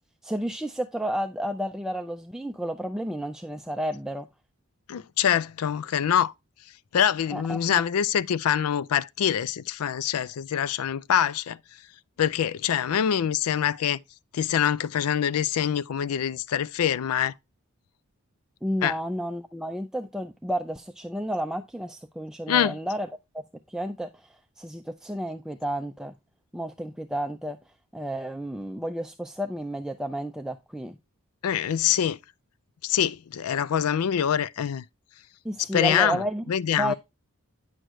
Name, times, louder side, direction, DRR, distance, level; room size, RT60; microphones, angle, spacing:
voice 1, 0.2-4.3 7.3-7.8 18.6-23.1 23.3-23.4 23.7-26.2 26.5-27.6 27.9-31.0 35.4-36.5 36.8-36.9, equal, 5° right, 0.4 m, -31 dB
voice 2, 4.9-6.3 6.9-11.6 12.2-14.0 14.3-17.3 18.8-18.9 22.5-22.7 31.4-32.2 32.8-34.8 35.6-36.2 36.5-36.9, left 9 dB, 75° left, 0.4 m, -25 dB
9.0 x 6.3 x 3.0 m
head